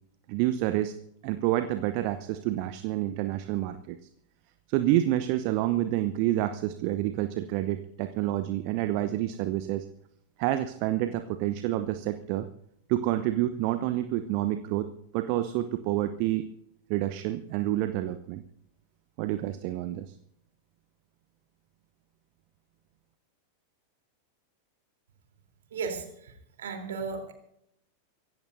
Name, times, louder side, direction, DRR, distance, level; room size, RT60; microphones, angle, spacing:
voice 1, 0.3-0.9 1.2-4.0 4.7-9.9 10.4-12.5 12.9-14.9 15.1-16.4 16.9-18.4 19.2-20.1, right 14 dB, 45° right, 10 dB, 0.8 m, -28 dB
voice 2, 25.7-27.3, right 5 dB, 60° right, 4 dB, 3.6 m, -35 dB
24.5 x 16.5 x 2.7 m, 0.76 s
figure-of-eight pair, 90°, 0 cm